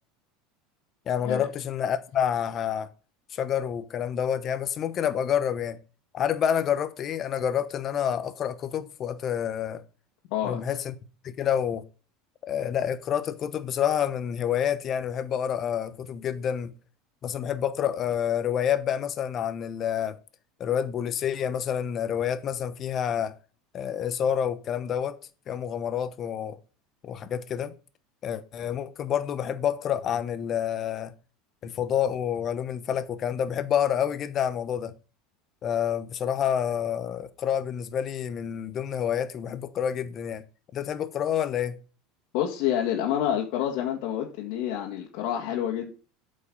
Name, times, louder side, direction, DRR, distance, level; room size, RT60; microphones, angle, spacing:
voice 1, 1.1-2.9 3.3-5.8 6.1-9.8 10.4-11.0 11.2-11.8 12.4-16.7 17.2-20.2 20.6-23.3 23.7-25.1 25.5-26.6 27.0-27.7 28.2-31.1 31.6-34.9 35.6-40.4 40.7-41.8, left 9 dB, 35° left, 1.0 m, -28 dB
voice 2, 10.3-10.6 42.3-45.9, left 10 dB, 65° left, 1.9 m, -28 dB
8.3 x 5.4 x 5.4 m
supercardioid pair, 135°, 0 cm